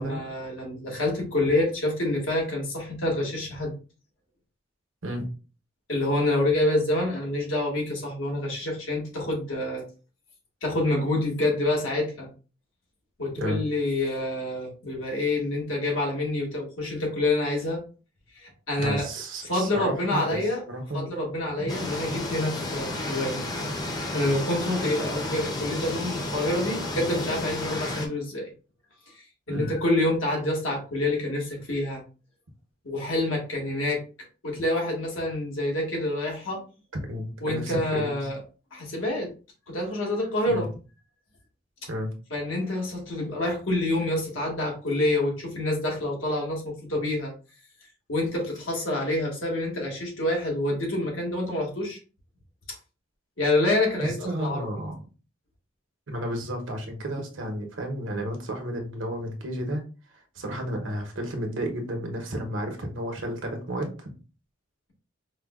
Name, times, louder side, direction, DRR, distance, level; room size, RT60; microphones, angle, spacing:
voice 1, 0.0-3.7 5.9-9.8 10.6-12.3 13.2-17.8 18.3-19.1 19.4-20.6 20.9-23.4 23.8-28.5 29.1-32.0 32.8-34.0 34.4-36.6 37.4-38.4 38.7-39.3 39.7-40.7 42.3-47.3 48.1-52.0 52.7-52.8 53.4-54.7, left 1 dB, 85° left, -1 dB, 1.5 m, -27 dB
voice 2, 18.8-20.4 20.7-21.1 21.6-21.7 29.5-29.7 37.1-38.2 40.5-40.7 41.9-42.1 54.0-55.0 56.1-59.8 60.3-64.1, equal, 75° right, 3 dB, 0.9 m, -32 dB
sound 1, 21.7-28.1, left 2 dB, 20° left, 0.5 m, -32 dB
4.9 x 2.2 x 2.4 m, 0.34 s
head